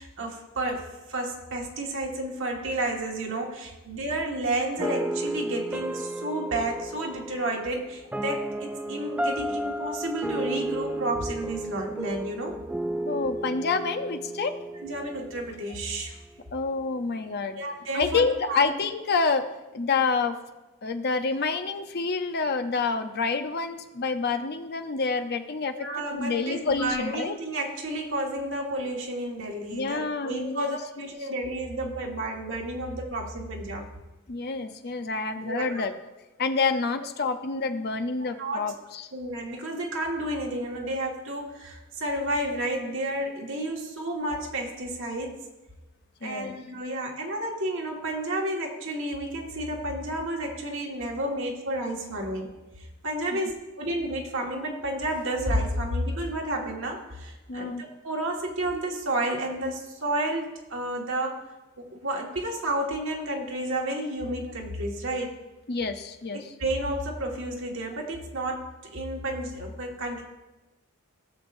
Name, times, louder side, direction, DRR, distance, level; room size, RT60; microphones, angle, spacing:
voice 1, 0.0-12.6 14.8-16.2 17.6-18.7 25.7-33.9 35.4-35.8 37.0-37.1 38.4-38.7 39.1-45.4 46.2-52.5 53.0-61.4 61.8-65.4 66.6-70.2, right 1 dB, 65° right, 0 dB, 1.7 m, -31 dB
sound 1, 4.8-15.9, right 1 dB, 5° right, 0.4 m, -33 dB
voice 2, 13.1-14.5 16.5-17.6 17.9-19.5 19.7-20.4 20.8-25.7 26.1-27.3 29.7-31.1 34.3-35.9 36.4-39.1 46.2-46.6 53.3-53.4 57.5-57.8 65.7-66.5, left 4 dB, 50° left, 7 dB, 0.7 m, -28 dB
17.5 x 7.2 x 2.6 m, 1.1 s
head